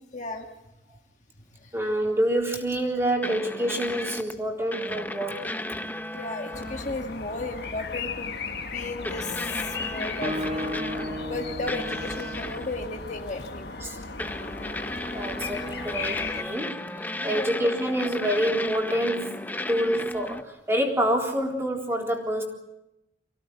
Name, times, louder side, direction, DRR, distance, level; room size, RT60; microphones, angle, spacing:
voice 1, 0.1-0.5 1.6-1.7 6.1-8.4 8.6-10.7 11.2-13.7 15.8-15.9 16.4-16.6 17.3-17.5, left 2 dB, 40° left, 3 dB, 1.7 m, -35 dB
voice 2, 1.7-5.4 13.8-14.0 15.1-16.8 17.2-19.3 19.7-22.4, right 1 dB, 15° right, 0 dB, 3.7 m, -27 dB
sound 1, 3.2-4.3 4.7-7.0 7.6-7.8 9.0-11.4 11.7-12.8 14.2-20.4, left 1 dB, 10° left, 0.9 m, -34 dB
sound 2, 6.5-16.4, left 4 dB, 60° left, 1.8 m, -36 dB
Guitar, 10.2-13.9, equal, 30° right, 1.0 m, -35 dB
25.0 x 17.0 x 9.2 m, 0.87 s
head